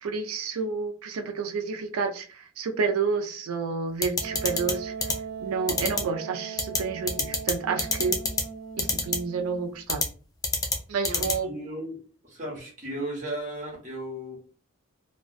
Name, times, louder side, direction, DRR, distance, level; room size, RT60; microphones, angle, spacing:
voice 1, 0.0-4.9 5.4-8.1 8.8-10.0 10.9-11.5, right 5 dB, 90° right, 5 dB, 0.4 m, -30 dB
sound 1, 4.0-4.7 5.0-5.1 5.7-6.0 6.6-6.8 7.1-7.5 7.8-8.4 8.8-9.2 9.9-10.1 10.4-10.8 11.0-11.3, left 4 dB, 15° left, 0.4 m, -24 dB
Wind instrument woodwind instrument, 4.2-9.7, right 7 dB, 60° right, 0.9 m, -39 dB
voice 2, 11.1-12.0 12.2-14.4, right 1 dB, 35° right, -3 dB, 1.1 m, -35 dB
2.5 x 2.1 x 2.4 m, 0.38 s
head